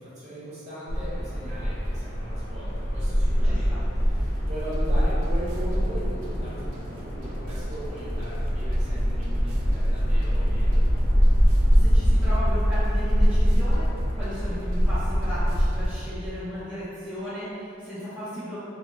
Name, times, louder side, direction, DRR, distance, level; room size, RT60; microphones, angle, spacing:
voice 1, 0.0-3.8 4.0-10.8, equal, 35° right, -10 dB, 1.1 m, -38 dB
sound 1, 0.9-15.9, equal, 55° left, 0.8 m, -23 dB
voice 2, 3.4-3.8 11.6-13.9 14.1-18.7, equal, 5° right, -15 dB, 0.6 m, -35 dB
sound 2, 4.3-16.1, right 1 dB, 85° right, 0.4 m, -46 dB
3.0 x 2.2 x 3.8 m, 2.7 s
head